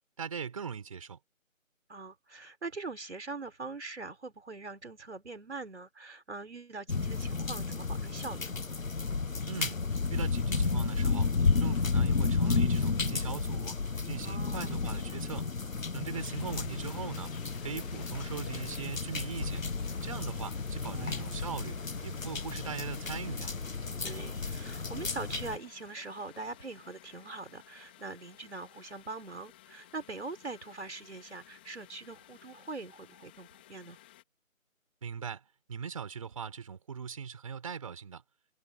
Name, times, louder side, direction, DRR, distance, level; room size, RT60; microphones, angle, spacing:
voice 1, 0.2-1.2 9.5-9.8 10.1-11.3 11.6-13.8 14.0-15.5 15.9-19.6 20.0-23.5 35.0-38.2, right 6 dB, 25° right, 5.9 m, -40 dB
voice 2, 1.9-8.5 14.2-14.8 20.9-21.3 24.0-34.0, right 3 dB, 55° right, 4.8 m, -42 dB
sound 1, 6.9-25.6, left 4 dB, 70° left, 1.5 m, -32 dB
sound 2, 16.1-34.2, left 14 dB, 5° left, 2.2 m, -56 dB
figure-of-eight pair, 170°, 41 cm